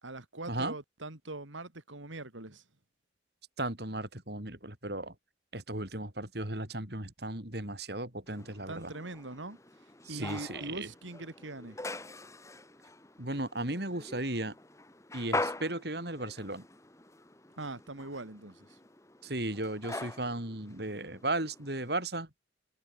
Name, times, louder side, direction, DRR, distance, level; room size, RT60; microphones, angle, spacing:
voice 1, 0.0-2.6 8.7-9.6 10.1-11.8 17.6-18.8, right 2 dB, 85° right, 3.2 m, -42 dB
voice 2, 3.6-5.1 5.5-8.9 10.0-10.9 13.2-14.5 15.1-16.6 19.2-22.3, right 2 dB, 55° right, 4.5 m, -35 dB
sound 1, 8.3-22.0, left 2 dB, 15° left, 1.6 m, -43 dB
head